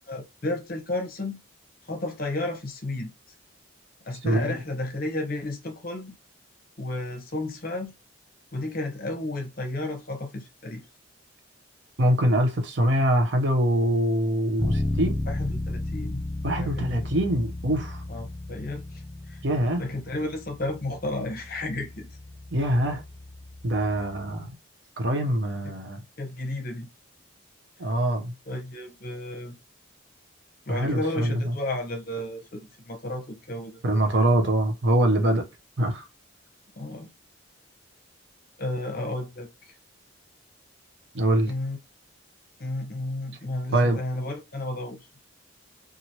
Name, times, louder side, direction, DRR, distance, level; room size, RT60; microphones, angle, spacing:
voice 1, 0.1-1.4 1.8-3.1 4.0-6.1 6.8-7.9 8.5-10.8 15.3-16.2 16.5-17.0 18.1-19.0 19.3-19.4 19.8-22.1 24.0-24.1 26.2-26.9 28.5-29.6 30.7-33.8 36.8-37.1 38.6-39.7 41.4-41.8 42.6-45.2, left 2 dB, 45° left, 0.8 m, -32 dB
voice 2, 12.0-15.2 16.4-18.0 19.4-19.8 22.5-23.0 23.6-24.5 25.0-26.0 27.8-28.3 30.7-31.4 33.8-35.4 35.8-36.0 41.1-41.5 43.7-44.0, right 1 dB, 60° right, 0.7 m, -23 dB
Bass guitar, 14.6-24.4, left 1 dB, 15° left, 0.4 m, -34 dB
2.9 x 2.4 x 2.7 m
head